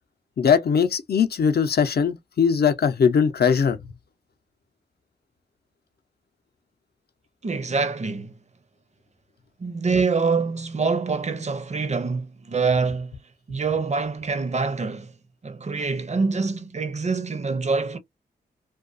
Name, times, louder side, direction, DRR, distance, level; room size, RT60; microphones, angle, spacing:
voice 1, 0.4-3.8, left 6 dB, 60° left, 0.6 m, -20 dB
voice 2, 7.4-8.3 9.6-13.1 13.5-15.1 15.4-18.0, right 4 dB, 40° right, 0.6 m, -25 dB
2.3 x 2.3 x 2.5 m
cardioid pair, 50°, 18 cm